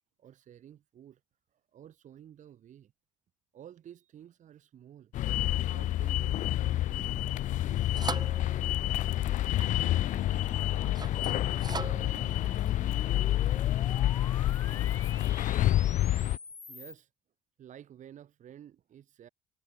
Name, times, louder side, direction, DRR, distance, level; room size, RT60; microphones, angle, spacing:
voice 1, 0.2-1.2 1.5-2.9 3.5-5.1 5.7-8.1 14.7-14.9 15.4-15.5 16.1-17.1 17.6-19.3, right 10 dB, 55° right, 2.5 m, -53 dB
sound 1, 5.1-16.4, left 14 dB, 55° left, 0.6 m, -28 dB
sound 2, 7.0-14.3, right 4 dB, 25° right, 3.2 m, -43 dB
voice 2, 9.6-15.4, right 10 dB, 90° right, 5.5 m, -58 dB
sound 3, 10.2-17.0, left 4 dB, 20° left, 0.8 m, -47 dB
hypercardioid pair, 55°, 16 cm